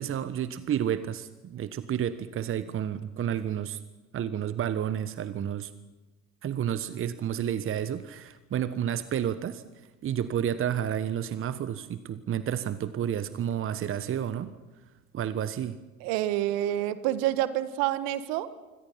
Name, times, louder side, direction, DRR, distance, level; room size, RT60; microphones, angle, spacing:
voice 1, 0.0-3.8 4.1-5.7 6.4-9.6 10.0-14.5 15.1-15.8, right 9 dB, 30° right, 14 dB, 1.2 m, -30 dB
voice 2, 16.0-18.5, right 13 dB, 55° right, 13 dB, 1.8 m, -28 dB
26.5 x 25.0 x 5.8 m, 1.2 s
figure-of-eight pair, 70°, 41 cm